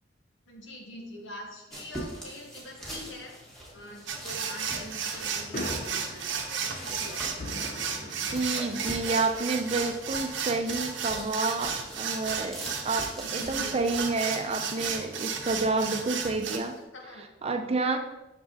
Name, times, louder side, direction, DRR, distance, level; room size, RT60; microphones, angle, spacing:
voice 1, 0.5-3.3 3.7-7.7 13.2-13.9 16.9-17.2, left 1 dB, 85° left, 1 dB, 1.3 m, -45 dB
sound 1, 1.7-16.8, right 1 dB, ahead, 1.4 m, -44 dB
sound 2, 2.1-9.4, left 2 dB, 45° left, 0.6 m, -44 dB
sound 3, 4.1-16.6, right 6 dB, 75° right, 0.7 m, -33 dB
voice 2, 8.2-12.6 12.8-16.8 17.4-18.0, right 3 dB, 35° right, 6 dB, 0.5 m, -29 dB
6.5 x 5.7 x 2.9 m, 0.98 s
head